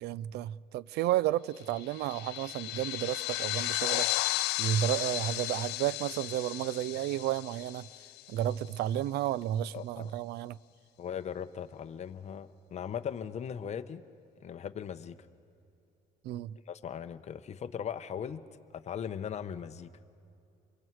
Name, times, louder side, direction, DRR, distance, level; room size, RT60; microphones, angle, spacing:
voice 1, 0.0-7.9 8.3-10.6 16.2-16.6, right 13 dB, 80° right, 0.4 m, -32 dB
sound 1, 1.7-8.5, left 18 dB, 80° left, 0.4 m, -34 dB
voice 2, 9.7-10.1 11.0-14.0 14.4-15.2 16.7-18.4 18.7-19.9, left 8 dB, 40° left, 0.9 m, -39 dB
29.0 x 23.5 x 4.7 m
cardioid pair, 110°, 17 cm